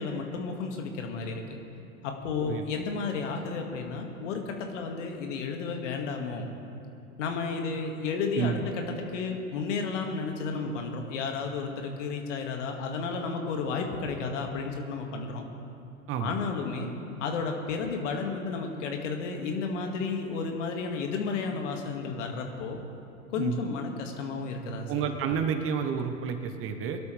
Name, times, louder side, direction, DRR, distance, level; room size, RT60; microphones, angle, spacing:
voice 1, 0.0-1.4 2.0-6.5 7.2-8.6 9.1-15.5 16.2-16.9 17.2-22.8 23.3-25.0, left 4 dB, 60° left, 3 dB, 2.1 m, -32 dB
voice 2, 24.9-27.0, right 7 dB, 30° right, 7 dB, 1.1 m, -30 dB
22.5 x 12.5 x 3.4 m, 2.7 s
hypercardioid pair, 105°, 42 cm